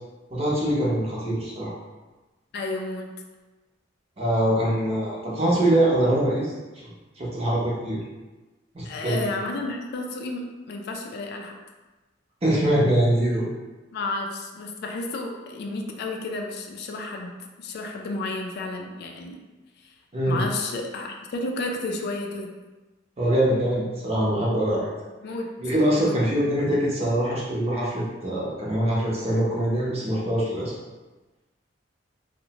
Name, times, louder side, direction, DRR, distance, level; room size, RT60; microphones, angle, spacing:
voice 1, 0.3-1.7 4.2-6.5 7.2-8.0 8.7-9.2 12.4-13.4 20.1-20.4 23.2-24.9 25.6-30.7, right 1 dB, 30° right, -5 dB, 0.7 m, -23 dB
voice 2, 2.5-3.1 8.8-11.5 13.9-19.4 19.8-19.9 20.3-22.5 25.2-25.5 25.9-26.2, left 2 dB, 55° left, 2 dB, 0.3 m, -32 dB
2.6 x 2.0 x 2.8 m, 1.2 s
head